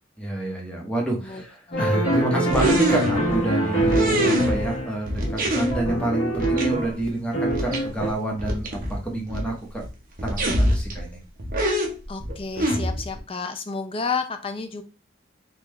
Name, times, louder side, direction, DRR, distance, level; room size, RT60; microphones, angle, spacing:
voice 1, 0.2-9.8 10.2-11.2, right 2 dB, 5° left, -1 dB, 1.1 m, -28 dB
voice 2, 1.2-1.9 12.1-14.8, left 5 dB, 30° left, 8 dB, 0.5 m, -31 dB
sound 1, 1.7-7.0 7.3-8.1, right 1 dB, 90° left, 1.3 m, -25 dB
sound 2, 2.5-3.5 3.8-4.8 5.1-5.9 6.3-6.7 7.0-7.1 7.5-7.8 8.1-8.2 8.4-9.5 9.8-9.9 10.2-11.1 11.4-13.2, equal, 45° right, 0.8 m, -25 dB
3.7 x 2.4 x 3.1 m, 0.30 s
head